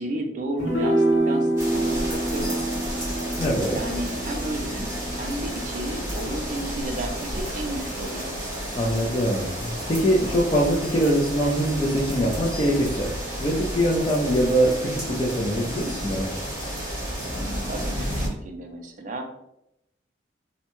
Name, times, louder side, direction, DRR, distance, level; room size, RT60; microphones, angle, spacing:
voice 1, 0.0-3.0 3.7-8.3 17.6-19.3, right 1 dB, 40° right, 4 dB, 0.4 m, -33 dB
sound 1, 0.6-7.1, right 1 dB, 75° left, 1.1 m, -27 dB
sound 2, 1.6-18.3, equal, 15° right, 0.9 m, -31 dB
voice 2, 3.4-3.7 8.8-13.1 13.4-16.3, equal, 30° left, -5 dB, 0.4 m, -23 dB
2.6 x 2.1 x 2.9 m, 0.82 s
head